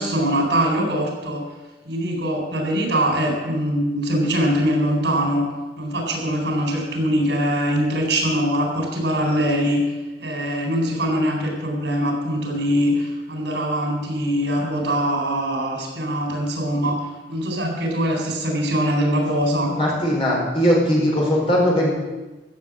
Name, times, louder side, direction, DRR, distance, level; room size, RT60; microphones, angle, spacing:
voice 1, 0.0-1.4 1.9-5.5 5.8-9.8 10.2-17.0 17.3-19.7, equal, 80° right, 1 dB, 4.2 m, -22 dB
voice 2, 19.8-21.9, equal, 30° left, -3 dB, 4.2 m, -19 dB
15.0 x 7.4 x 7.5 m, 1.2 s
head